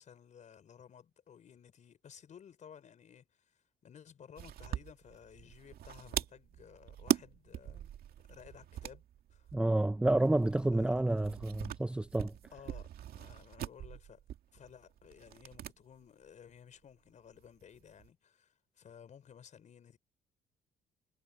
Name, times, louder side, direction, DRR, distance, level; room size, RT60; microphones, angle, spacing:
voice 1, 0.0-7.9 8.3-9.0 9.3-9.6 10.7-11.0 12.5-14.2 14.5-20.0, left 8 dB, 45° left, 5.0 m, -56 dB
sound 1, 4.4-15.8 16.0-16.1 17.4-18.1, right 11 dB, 65° right, 2.2 m, -41 dB
voice 2, 9.5-12.3, right 2 dB, 5° right, 0.5 m, -29 dB
cardioid pair, 110°, 17 cm